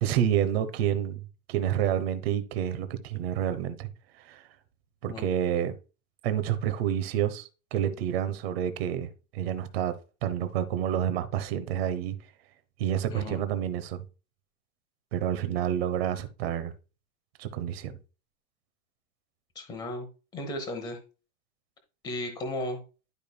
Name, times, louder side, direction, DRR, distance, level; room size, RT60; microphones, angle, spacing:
voice 1, 0.0-1.2 1.5-3.9 4.2-4.5 5.0-5.7 6.2-9.9 10.2-12.2 12.8-14.0 15.1-16.7 17.4-17.9, right 10 dB, 45° right, 0.9 m, -29 dB
voice 2, 13.1-13.4 19.5-20.1 20.3-21.0 22.0-22.8, left 1 dB, 10° left, 1.0 m, -35 dB
11.5 x 5.2 x 2.2 m
supercardioid pair, 175°, 43 cm